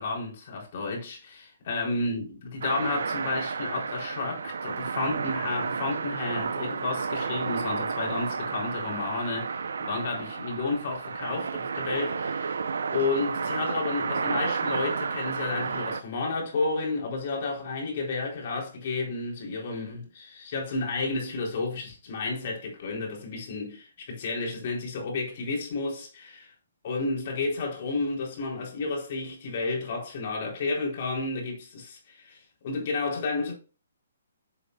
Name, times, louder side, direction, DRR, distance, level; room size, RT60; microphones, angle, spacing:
voice 1, 0.0-26.5 26.8-33.5, left 3 dB, 45° left, 3.9 m, -31 dB
sound 1, 2.6-16.0, right 5 dB, 75° right, 0.9 m, -31 dB
8.2 x 7.4 x 2.6 m
hypercardioid pair, 150°, 0 cm